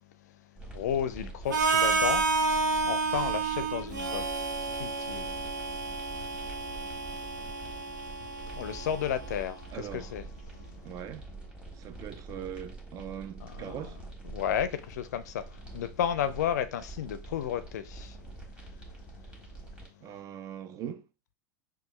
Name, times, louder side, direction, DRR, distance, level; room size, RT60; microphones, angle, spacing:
sound 1, 0.6-19.9, right 2 dB, 10° right, 1.5 m, -45 dB
voice 1, 0.7-2.3 2.8-4.3 4.8-5.3 7.7-7.8 8.5-10.2 13.4-13.9 14.3-18.2, left 9 dB, 60° left, 0.5 m, -32 dB
Harmonica, 1.5-9.4, right 4 dB, 65° right, 0.7 m, -30 dB
voice 2, 9.7-10.1 10.8-11.3 11.8-14.0 20.0-21.1, right 9 dB, 35° right, 0.4 m, -41 dB
6.1 x 2.3 x 3.1 m
figure-of-eight pair, 80°, 10 cm